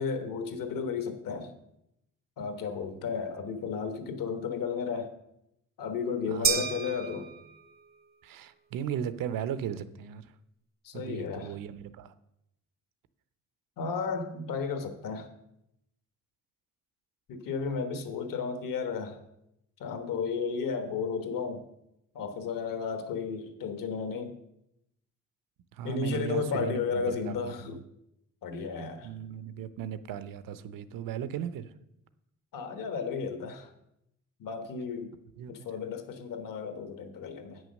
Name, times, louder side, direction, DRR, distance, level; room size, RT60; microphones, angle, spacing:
voice 1, 0.0-1.5 2.4-5.1 5.8-7.3 10.8-11.6 13.8-15.3 17.3-19.2 19.8-21.6 22.1-24.3 25.8-27.8 28.4-29.1 32.5-33.7 34.4-35.1 35.5-37.6, left 5 dB, 80° left, 8 dB, 1.3 m, -33 dB
voice 2, 6.3-6.6 8.2-10.3 10.9-12.1 25.7-27.8 29.0-31.7 35.4-35.5, right 9 dB, 85° right, 14 dB, 0.7 m, -37 dB
sound 1, 6.4-7.9, right 7 dB, 30° right, 0.4 m, -31 dB
8.7 x 6.3 x 6.4 m, 0.82 s
cardioid pair, 175°, 33 cm